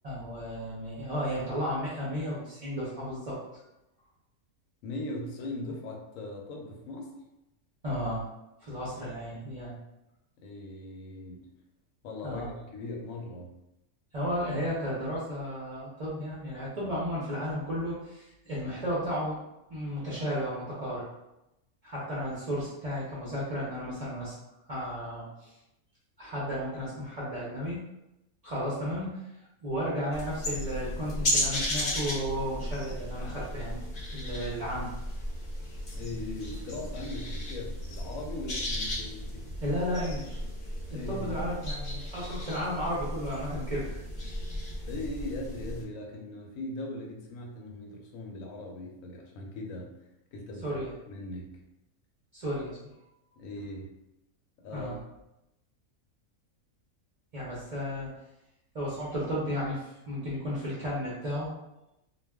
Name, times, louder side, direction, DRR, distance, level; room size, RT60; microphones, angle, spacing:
voice 1, 0.0-3.4 7.8-8.3 8.6-9.8 12.2-12.5 14.1-19.4 19.7-21.1 21.8-24.3 24.7-25.6 26.2-27.8 28.4-29.2 29.6-33.8 34.1-34.9 39.6-40.4 40.9-44.0 50.6-50.9 52.3-52.8 54.7-54.9 57.3-58.1 58.7-61.5, equal, 45° right, -8 dB, 0.5 m, -33 dB
voice 2, 4.8-7.1 10.4-11.5 12.0-12.5 12.7-13.5 35.9-39.5 40.9-41.5 44.9-49.9 50.3-51.6 53.4-53.9 54.6-55.0, left 2 dB, 70° left, 0 dB, 1.0 m, -39 dB
sound 1, 30.1-45.8, left 1 dB, 50° left, 0.7 m, -35 dB
2.3 x 2.2 x 3.4 m, 0.90 s
omnidirectional pair, 1.5 m